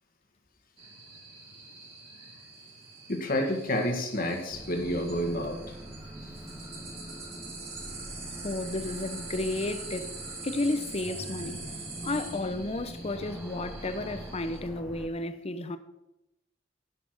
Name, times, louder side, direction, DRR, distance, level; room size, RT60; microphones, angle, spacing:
sound 1, 0.8-14.6, right 3 dB, 30° right, 2.6 m, -44 dB
voice 1, 3.1-5.6, left 1 dB, 50° left, 1.9 m, -29 dB
sound 2, 4.5-15.1, equal, 5° right, 1.0 m, -43 dB
voice 2, 8.4-10.1 10.4-11.6 12.0-15.8, left 2 dB, 35° left, 0.7 m, -32 dB
11.0 x 5.9 x 6.0 m
head